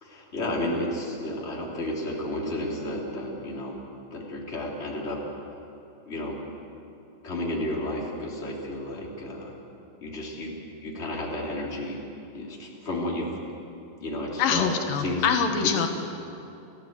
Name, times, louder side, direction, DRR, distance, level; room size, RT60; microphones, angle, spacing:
voice 1, 0.0-3.8 4.1-5.2 6.0-6.4 7.2-9.5 10.0-10.5 10.8-12.0 12.3-13.3 14.0-14.7 15.0-15.3, left 1 dB, 20° left, -2 dB, 3.3 m, -32 dB
voice 2, 14.4-15.9, left 6 dB, 85° left, 5 dB, 3.1 m, -24 dB
29.0 x 14.0 x 8.2 m, 2.8 s
omnidirectional pair, 3.9 m